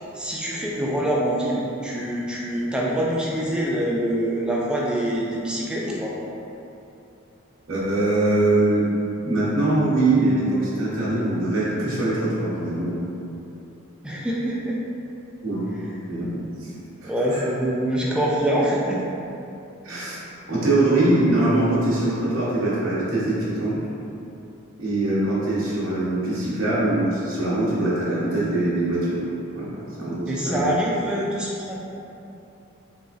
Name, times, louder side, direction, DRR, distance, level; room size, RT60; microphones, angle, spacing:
voice 1, 0.1-6.2 14.0-14.8 16.2-16.3 17.0-19.0 30.3-31.7, right 1 dB, 5° right, -4 dB, 0.3 m, -25 dB
voice 2, 7.7-8.9 9.2-13.1 15.4-15.7 16.1-16.7 17.0-17.4 19.8-20.2 20.5-23.8 24.8-29.2 29.5-30.8, right 2 dB, 65° right, -8 dB, 0.9 m, -23 dB
3.6 x 3.2 x 2.5 m, 2.8 s
head